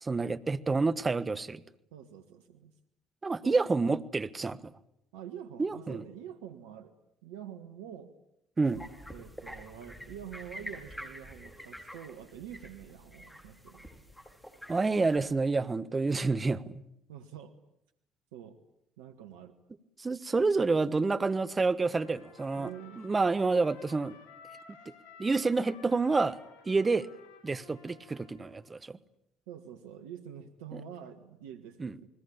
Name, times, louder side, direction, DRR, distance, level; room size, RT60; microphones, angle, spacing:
voice 1, 0.0-1.6 3.2-4.7 5.6-6.0 8.6-8.9 14.7-16.8 20.0-22.7 23.0-24.2 25.2-26.4 26.6-27.1 27.4-29.0 30.7-30.8 31.8-31.9, right 3 dB, 25° right, 14 dB, 1.3 m, -28 dB
voice 2, 1.9-2.7 3.4-3.6 5.1-6.9 7.2-8.1 9.1-13.9 17.1-17.5 18.3-18.6 19.0-19.5 22.5-23.1 29.5-32.1, right 9 dB, 80° right, 8 dB, 1.5 m, -46 dB
sound 1, 8.7-15.2, equal, 5° left, 5.1 m, -47 dB
Trumpet, 21.9-28.6, left 6 dB, 75° left, 7.0 m, -54 dB
29.5 x 20.5 x 8.6 m, 0.80 s
hypercardioid pair, 60°, 0 cm